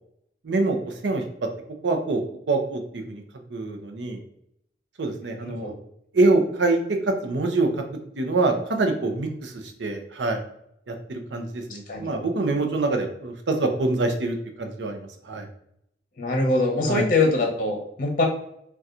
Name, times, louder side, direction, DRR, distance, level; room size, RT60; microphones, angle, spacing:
voice 1, 0.4-1.2 1.8-3.2 3.5-4.2 5.0-5.8 6.1-7.8 8.2-10.4 10.9-15.5 16.8-17.0, right 2 dB, 90° right, 4 dB, 0.6 m, -25 dB
voice 2, 11.7-12.1 16.2-18.2, left 2 dB, 50° left, 1 dB, 0.8 m, -23 dB
4.1 x 2.3 x 2.4 m, 0.74 s
head